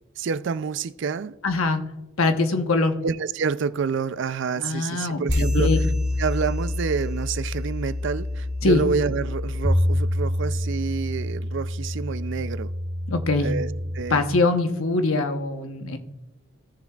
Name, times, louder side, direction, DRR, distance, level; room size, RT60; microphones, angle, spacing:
voice 1, 0.2-1.4 3.0-5.7 6.2-12.7 13.4-13.7 13.9-14.2, right 5 dB, 60° right, 0.4 m, -28 dB
voice 2, 1.4-1.8 2.2-2.9 4.6-5.8 8.6-8.8 13.1-13.5 14.1-16.0, left 3 dB, 80° left, 1.0 m, -23 dB
sound 1, 5.3-14.0, left 1 dB, 10° left, 1.2 m, -26 dB
sound 2, 5.3-8.2, right 5 dB, 35° right, 1.4 m, -44 dB
17.0 x 7.0 x 2.4 m
head